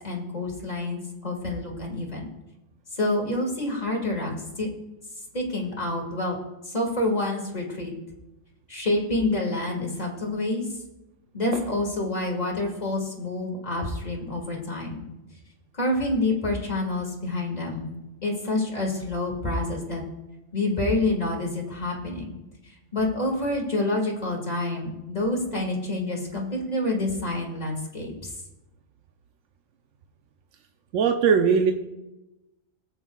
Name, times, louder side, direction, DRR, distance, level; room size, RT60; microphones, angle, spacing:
voice 1, 0.0-2.3 2.9-4.7 5.3-6.4 6.6-7.9 8.7-10.7 11.3-15.1 15.7-17.9 18.2-20.0 20.5-22.4 22.6-28.3, left 2 dB, 30° left, -1 dB, 2.1 m, -28 dB
voice 2, 30.9-31.7, right 6 dB, 80° right, 5 dB, 1.1 m, -19 dB
19.0 x 8.1 x 2.3 m, 0.99 s
omnidirectional pair, 1.3 m